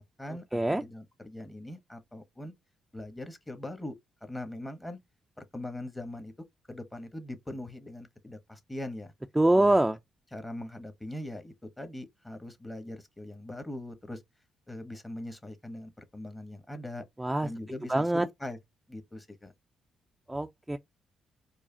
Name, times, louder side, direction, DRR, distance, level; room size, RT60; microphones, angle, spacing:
voice 1, 0.0-2.5 2.9-3.9 4.2-5.0 5.4-6.3 6.7-9.1 9.5-9.7 10.3-14.2 14.7-17.0 17.4-18.6 18.9-19.5, left 1 dB, 15° left, 1.1 m, -41 dB
voice 2, 0.5-0.8 9.4-10.0 17.2-17.5 17.9-18.2 20.3-20.8, right 1 dB, 10° right, 0.4 m, -24 dB
4.7 x 2.4 x 2.7 m
cardioid pair, 90°, 0 cm